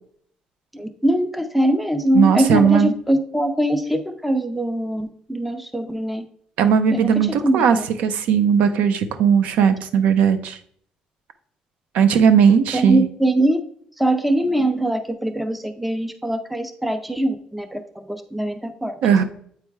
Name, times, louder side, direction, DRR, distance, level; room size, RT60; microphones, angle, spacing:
voice 1, 0.7-6.3 6.9-7.9 12.7-13.6 14.0-18.9, right 1 dB, 5° right, 8 dB, 0.4 m, -22 dB
voice 2, 2.1-2.9 6.6-7.8 8.0-10.6 11.9-13.1 19.0-19.2, right 7 dB, 70° right, 10 dB, 0.6 m, -17 dB
8.2 x 3.3 x 4.6 m, 0.63 s
cardioid pair, 175°, 3 cm